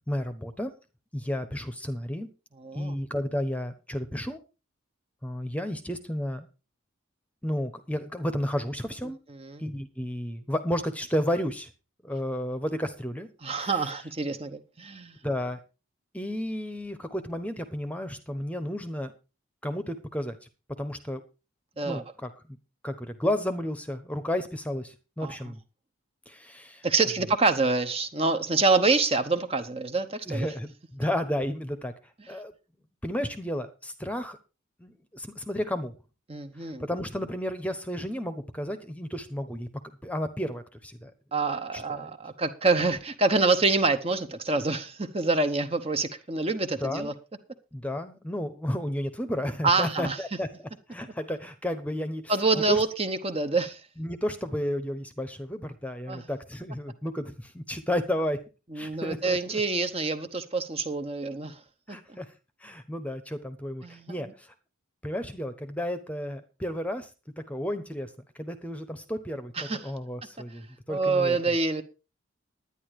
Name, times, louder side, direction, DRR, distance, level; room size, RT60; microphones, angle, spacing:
voice 1, 0.1-0.7 1.1-2.3 2.7-4.4 5.2-6.5 7.4-9.2 9.6-11.7 12.0-13.3 13.6-13.8 15.2-15.6 16.1-19.1 19.6-20.4 20.8-21.2 21.8-22.6 22.8-25.6 26.3-26.8 30.3-31.9 32.3-32.5 33.0-34.4 34.8-35.9 36.8-41.1 41.7-42.0 46.8-47.1 47.7-52.3 52.7-52.8 54.0-58.4 58.7-59.6 61.9-62.3 62.6-64.5 65.0-67.1 67.5-68.1 68.4-71.4, equal, 5° left, 1.0 m, -32 dB
voice 2, 2.6-3.0 9.4-9.6 13.4-15.1 21.8-22.0 25.2-25.4 26.8-30.5 36.3-36.8 41.3-47.1 49.6-50.2 52.3-53.8 56.1-56.2 58.7-61.6 61.9-62.2 63.8-64.1 69.6-69.9 70.9-71.8, right 3 dB, 30° right, 1.0 m, -26 dB
11.0 x 10.0 x 4.8 m
head